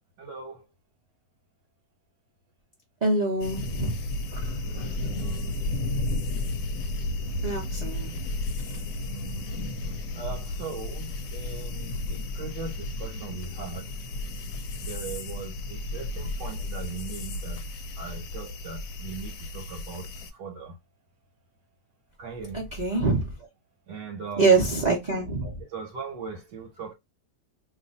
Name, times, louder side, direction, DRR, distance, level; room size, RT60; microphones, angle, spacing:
voice 1, 0.2-0.6 4.6-5.6 9.0-9.6 10.1-13.9 14.8-17.6 17.9-20.8 22.2-22.6 23.9-24.6 25.7-26.9, right 4 dB, 70° right, 1.4 m, -39 dB
voice 2, 3.0-4.0 4.3-4.9 7.4-8.1 22.5-23.3 24.4-25.6, right 3 dB, 40° right, 0.6 m, -25 dB
sound 1, 3.4-20.3, left 2 dB, 70° left, 1.1 m, -33 dB
2.8 x 2.5 x 3.9 m
omnidirectional pair, 1.9 m